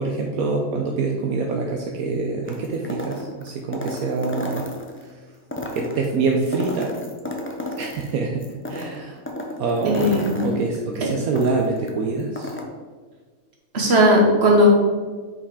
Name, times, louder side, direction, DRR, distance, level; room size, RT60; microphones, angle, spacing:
voice 1, 0.0-4.6 5.0-5.1 5.7-6.9 7.8-9.2 9.6-12.5, right 3 dB, 75° right, 1 dB, 1.1 m, -25 dB
sound 1, 2.4-5.0 5.4-8.1 8.4-11.9 12.2-12.6, left 1 dB, 15° left, 0.5 m, -32 dB
voice 2, 9.8-10.5 11.0-11.1 13.7-14.7, equal, 45° right, -1 dB, 1.7 m, -17 dB
5.7 x 5.5 x 4.7 m, 1.5 s
omnidirectional pair, 1.6 m